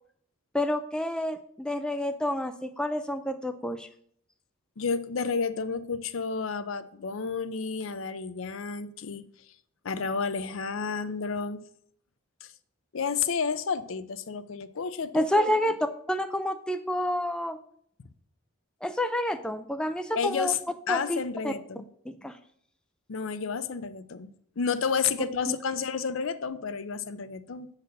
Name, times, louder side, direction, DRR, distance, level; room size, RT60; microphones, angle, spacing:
voice 1, 0.5-3.9 15.1-15.8 16.1-17.6 18.8-20.5 20.9-21.5 22.2-22.4 25.5-25.6, left 1 dB, 5° left, 8 dB, 0.3 m, -29 dB
voice 2, 4.8-9.3 9.8-11.6 12.4-12.5 12.9-15.5 20.2-20.6 20.9-21.8 23.1-24.3 24.6-27.7, left 5 dB, 65° left, 12 dB, 0.5 m, -31 dB
7.8 x 4.1 x 6.6 m, 0.65 s
head